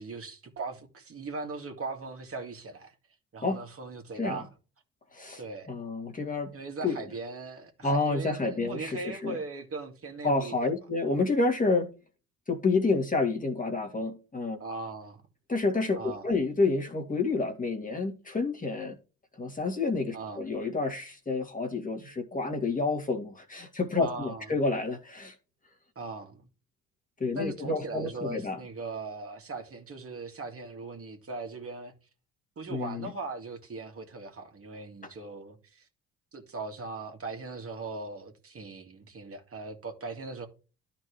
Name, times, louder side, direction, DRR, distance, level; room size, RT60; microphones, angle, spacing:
voice 1, 0.0-2.9 3.3-4.5 5.4-5.7 6.5-10.5 14.6-15.2 15.9-16.3 20.1-20.5 24.0-24.5 26.0-26.5 27.3-31.9 32.6-35.9 36.3-40.5, right 3 dB, 40° right, 2.4 m, -39 dB
voice 2, 5.7-6.5 6.8-7.0 7.8-9.4 10.2-11.9 12.5-14.6 15.5-19.0 19.4-25.3 27.2-28.6 32.7-33.1, left 3 dB, 25° left, 2.2 m, -29 dB
13.0 x 4.5 x 3.2 m
hypercardioid pair, 55°, 34 cm